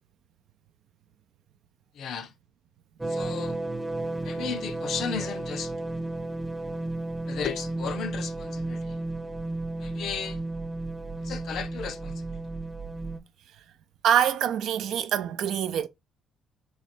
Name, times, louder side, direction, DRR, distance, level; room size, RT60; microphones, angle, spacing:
voice 1, 1.9-2.3 3.1-3.6 4.2-5.7 7.3-9.0 9.8-10.4 11.2-12.4, left 7 dB, 70° left, 0.6 m, -35 dB
sound 1, 3.0-13.2, right 2 dB, 15° right, 0.7 m, -33 dB
voice 2, 14.0-15.9, right 9 dB, 75° right, 0.4 m, -25 dB
3.2 x 2.3 x 4.2 m
supercardioid pair, 60°, 0 cm